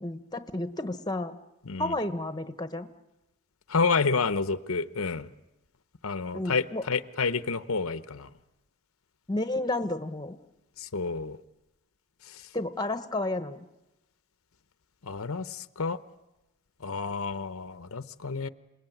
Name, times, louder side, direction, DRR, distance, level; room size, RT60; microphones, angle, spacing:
voice 1, 0.0-1.3 1.8-2.9 6.3-6.8 9.3-10.4 12.5-13.7, left 2 dB, 20° left, 9 dB, 1.1 m, -31 dB
voice 2, 1.7-2.0 3.7-5.3 6.0-8.3 10.8-11.4 12.2-12.5 15.0-16.0 16.8-18.5, left 4 dB, 80° left, 12 dB, 0.9 m, -29 dB
27.5 x 20.0 x 9.2 m, 0.97 s
head